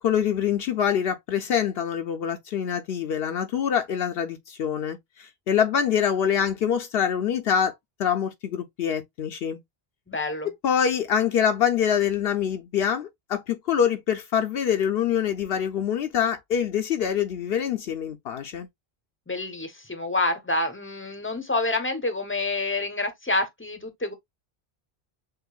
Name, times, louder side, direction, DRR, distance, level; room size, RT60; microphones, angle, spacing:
voice 1, 0.0-7.7 8.0-9.6 10.6-18.7, left 8 dB, 70° left, 0.8 m, -25 dB
voice 2, 10.1-10.5 19.3-24.1, left 2 dB, 15° left, 0.7 m, -28 dB
6.5 x 2.5 x 2.3 m
omnidirectional pair, 1.1 m